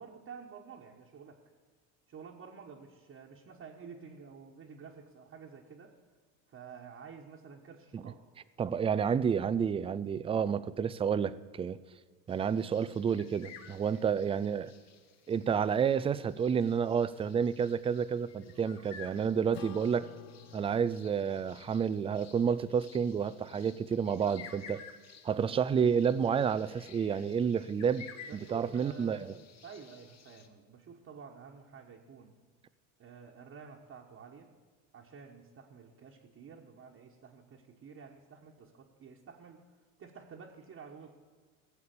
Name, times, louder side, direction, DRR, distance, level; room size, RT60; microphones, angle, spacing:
voice 1, 0.0-1.4 2.1-5.9 6.5-8.2 13.9-14.1 28.3-29.3 29.6-32.3 33.0-34.5 34.9-39.6 40.0-41.2, right 6 dB, 35° right, -2 dB, 1.3 m, -50 dB
voice 2, 8.6-11.8 12.3-14.7 15.3-20.1 20.5-24.8 25.2-28.1 28.5-29.2, right 7 dB, 15° right, 16 dB, 0.3 m, -30 dB
sound 1, 12.3-30.5, left 7 dB, 40° left, 1.3 m, -54 dB
Acoustic guitar / Strum, 19.5-24.3, left 8 dB, 70° left, 1.0 m, -53 dB
16.0 x 7.0 x 6.8 m, 1.5 s
supercardioid pair, 95°, 40 cm